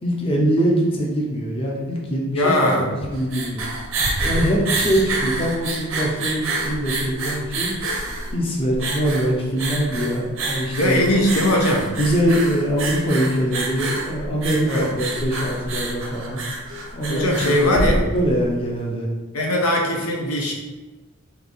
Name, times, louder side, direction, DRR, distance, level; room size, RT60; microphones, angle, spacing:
voice 1, 0.0-3.7 4.2-7.7 8.3-11.0 12.0-16.4 16.9-19.1, equal, 25° left, -2 dB, 0.6 m, -23 dB
voice 2, 2.3-2.8 10.8-11.9 14.7-14.9 17.1-18.0 19.3-20.5, left 1 dB, 90° left, -1 dB, 0.8 m, -20 dB
sound 1, 3.0-18.5, right 2 dB, 65° right, 0.7 m, -27 dB
3.4 x 2.8 x 3.9 m, 1.2 s
head